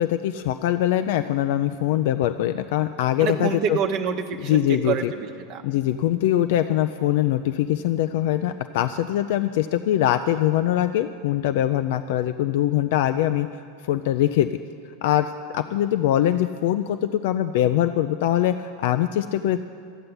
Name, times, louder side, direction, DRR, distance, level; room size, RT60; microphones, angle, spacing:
voice 1, 0.0-3.8 4.4-5.1 5.6-13.5 13.9-14.5 15.0-19.6, left 12 dB, 60° left, 10 dB, 0.4 m, -22 dB
voice 2, 3.2-5.6, right 7 dB, 55° right, 4 dB, 0.9 m, -27 dB
13.0 x 7.7 x 9.6 m, 2.2 s
hypercardioid pair, 90°, 0 cm